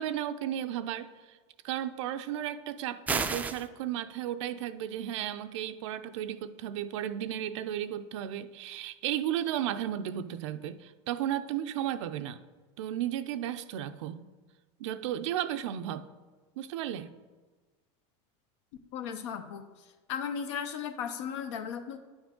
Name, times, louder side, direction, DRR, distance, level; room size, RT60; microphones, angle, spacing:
voice 1, 0.0-1.4 1.6-12.4 12.8-14.2 14.8-16.1 16.6-17.1, right 11 dB, 90° right, 10 dB, 0.5 m, -34 dB
sound 1, 3.1-3.7, right 4 dB, 10° right, 0.3 m, -30 dB
voice 2, 18.9-19.6 20.1-22.0, left 7 dB, 85° left, 8 dB, 0.7 m, -35 dB
9.6 x 6.2 x 3.7 m, 1.3 s
supercardioid pair, 145°, 15 cm